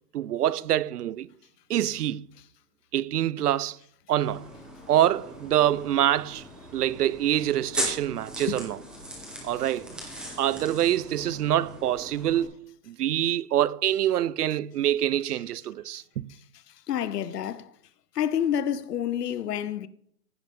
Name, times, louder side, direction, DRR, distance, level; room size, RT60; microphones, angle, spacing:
voice 1, 0.1-1.3 1.7-2.3 2.9-3.8 4.1-4.5 4.9-6.4 6.7-8.8 9.4-10.0 10.4-12.5 12.9-16.3, right 12 dB, 70° right, 0.6 m, -25 dB
sound 1, 4.2-12.4, equal, ahead, 1.3 m, -38 dB
voice 2, 16.7-17.7 18.1-19.9, left 9 dB, 75° left, 1.0 m, -29 dB
15.5 x 10.5 x 3.8 m
hypercardioid pair, 180°, 48 cm